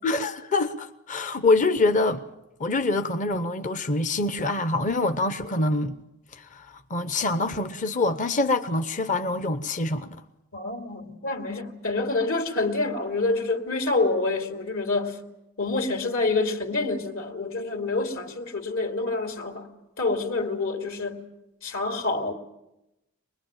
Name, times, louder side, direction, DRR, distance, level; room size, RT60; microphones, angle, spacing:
voice 1, 0.0-2.2 2.6-5.9 6.3-10.2, left 2 dB, 35° left, 0.8 m, -25 dB
voice 2, 10.5-15.2 15.6-19.7 20.0-21.2 21.6-22.3, left 3 dB, 65° left, 2.9 m, -27 dB
24.5 x 21.0 x 9.0 m
head